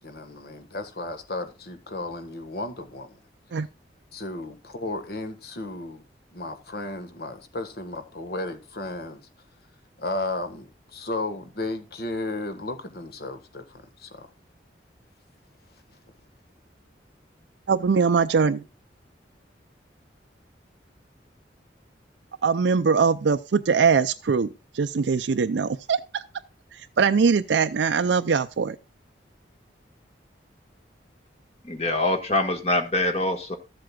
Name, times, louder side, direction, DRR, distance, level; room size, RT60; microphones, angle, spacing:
voice 1, 0.0-3.2 4.1-6.0 6.3-9.2 10.0-14.3, left 2 dB, 60° left, 1.5 m, -34 dB
voice 2, 17.7-18.6 22.4-24.5 24.7-26.2 27.0-28.8, right 5 dB, 85° right, 0.5 m, -22 dB
voice 3, 31.7-33.6, left 2 dB, 35° left, 1.5 m, -24 dB
14.0 x 7.7 x 2.3 m
head